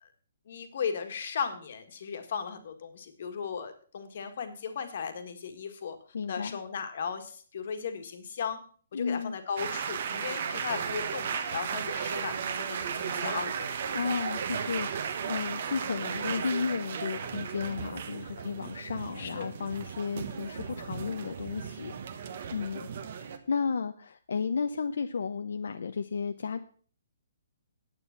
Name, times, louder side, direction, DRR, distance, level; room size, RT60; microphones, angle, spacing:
voice 1, 0.5-6.0 6.3-8.6 8.9-13.7 19.2-19.5, left 6 dB, 40° left, 7 dB, 1.7 m, -36 dB
voice 2, 6.1-6.6 8.9-9.3 13.9-22.9 23.5-26.6, left 5 dB, 70° left, 8 dB, 0.7 m, -33 dB
sound 1, 9.6-23.4, right 7 dB, 40° right, 1.2 m, -35 dB
9.8 x 8.7 x 5.8 m, 0.44 s
hypercardioid pair, 180°, 0 cm